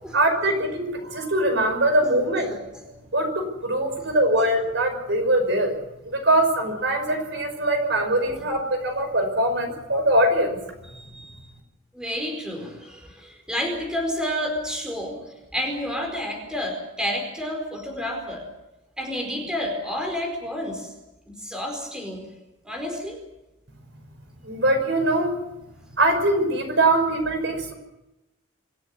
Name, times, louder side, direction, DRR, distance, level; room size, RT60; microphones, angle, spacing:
voice 1, 0.1-2.6 3.1-5.8 6.0-10.6 24.4-25.4 26.0-27.7, right 1 dB, 60° right, 5 dB, 5.6 m, -22 dB
voice 2, 2.4-2.8 4.0-4.1 10.9-11.4 11.9-15.2 15.5-18.4 19.0-20.9 21.4-22.3 22.6-23.2, equal, 5° right, 2 dB, 4.6 m, -30 dB
26.0 x 14.0 x 9.7 m, 0.96 s
head